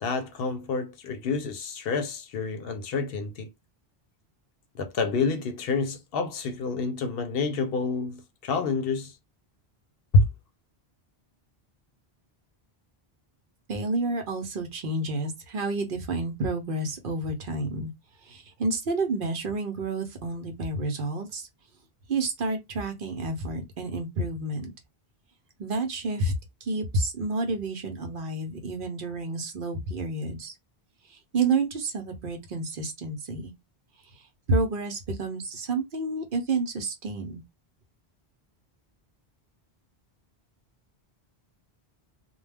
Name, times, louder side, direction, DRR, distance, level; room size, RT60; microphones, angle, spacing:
voice 1, 0.0-3.5 4.7-9.1 10.1-10.3, left 3 dB, 70° left, 0.8 m, -28 dB
voice 2, 13.7-17.9 18.3-21.5 22.1-24.7 25.6-26.3 26.6-30.5 31.3-33.5 34.5-37.4, right 2 dB, 60° right, 0.8 m, -29 dB
2.2 x 2.2 x 3.3 m
omnidirectional pair, 1.0 m